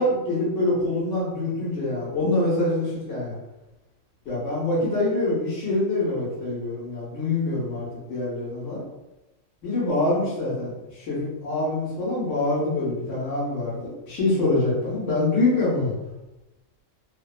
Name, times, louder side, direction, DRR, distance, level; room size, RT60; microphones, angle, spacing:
voice 1, 0.0-3.4 4.3-8.8 9.6-15.9, left 2 dB, 80° left, -8 dB, 1.1 m, -25 dB
2.6 x 2.1 x 2.3 m, 0.98 s
omnidirectional pair, 1.3 m